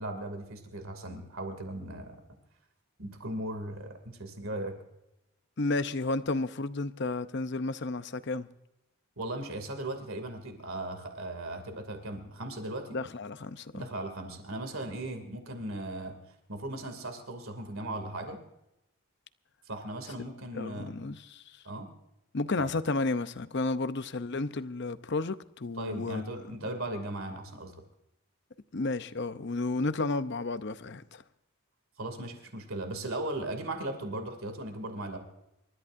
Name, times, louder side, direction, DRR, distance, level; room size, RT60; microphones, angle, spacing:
voice 1, 0.0-2.2 3.0-4.8 9.2-13.0 13.7-16.2 16.5-18.4 19.7-20.9 21.6-21.9 22.6-22.7 25.8-27.7 32.0-35.2, right 1 dB, 70° right, 2.6 m, -37 dB
voice 2, 5.6-8.5 12.9-13.9 20.5-21.4 22.3-26.3 28.7-31.2, left 3 dB, 50° left, 0.7 m, -32 dB
28.5 x 13.5 x 2.6 m
head